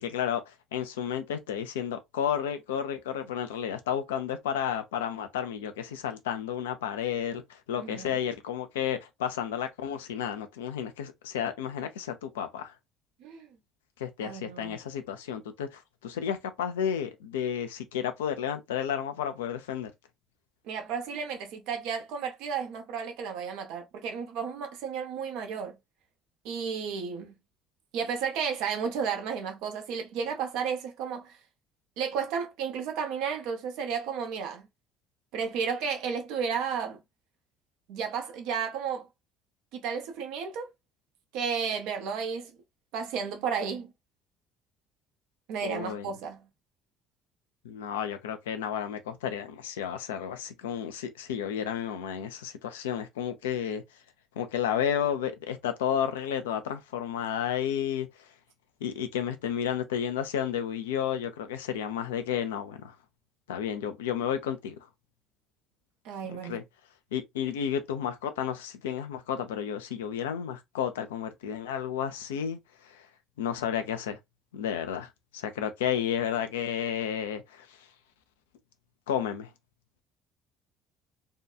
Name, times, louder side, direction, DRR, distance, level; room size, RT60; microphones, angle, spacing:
voice 1, 0.0-12.7 14.0-19.9 45.6-46.1 47.6-53.8 54.4-58.1 58.8-62.9 63.5-64.9 66.4-66.6 67.1-72.6 72.8-73.1 73.4-74.2 74.5-77.8 79.1-79.5, left 9 dB, 80° left, 0.4 m, -32 dB
voice 2, 7.8-8.1 13.2-13.5 14.2-14.8 20.6-25.8 26.4-27.3 27.9-31.4 32.0-34.6 35.3-37.0 37.9-39.1 39.7-40.7 41.3-42.5 42.9-43.9 45.5-46.4 66.0-66.6, right 6 dB, 65° right, 0.7 m, -33 dB
2.7 x 2.2 x 2.3 m
hypercardioid pair, 55°, 0 cm